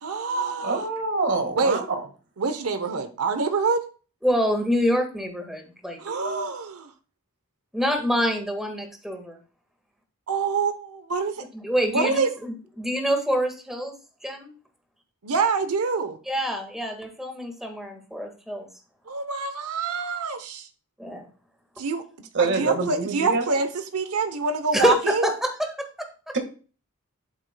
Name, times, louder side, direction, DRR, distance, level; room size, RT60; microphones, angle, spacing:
voice 1, 0.0-0.9 1.6-1.8 2.4-3.8 6.0-6.9 10.3-11.4 11.9-12.3 15.2-16.2 19.1-20.7 21.8-25.3, right 4 dB, 85° right, 0.9 m, -26 dB
voice 2, 0.6-1.8 22.3-23.4, right 3 dB, 55° right, 1.7 m, -25 dB
voice 3, 4.2-6.0 7.7-9.4 11.4-13.9 14.2-14.5 16.3-18.7 21.0-21.3 24.7-26.3, equal, ahead, 1.7 m, -26 dB
11.5 x 8.1 x 2.3 m
head